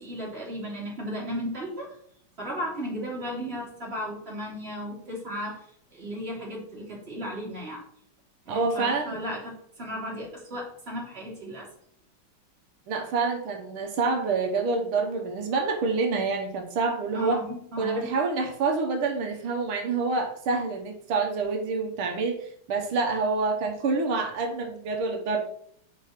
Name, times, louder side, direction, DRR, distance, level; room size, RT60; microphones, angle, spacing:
voice 1, 0.0-1.9 2.4-5.6 5.9-7.8 8.4-11.7 17.1-18.1, equal, 30° right, -4 dB, 2.9 m, -35 dB
voice 2, 8.5-9.2 12.9-17.4 17.8-25.4, right 4 dB, 85° right, 2 dB, 2.0 m, -27 dB
5.0 x 5.0 x 5.7 m, 0.65 s
omnidirectional pair, 2.2 m